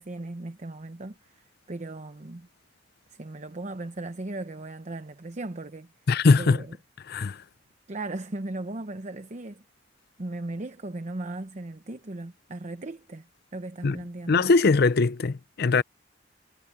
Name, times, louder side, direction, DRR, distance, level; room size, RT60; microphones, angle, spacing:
voice 1, 0.0-2.5 3.1-5.9 6.4-6.8 7.9-9.6 10.2-14.5, right 2 dB, 40° right, 0.8 m, -37 dB
voice 2, 6.1-6.6 7.1-7.4 13.8-14.0 14.3-15.8, left 4 dB, 55° left, 0.6 m, -21 dB
head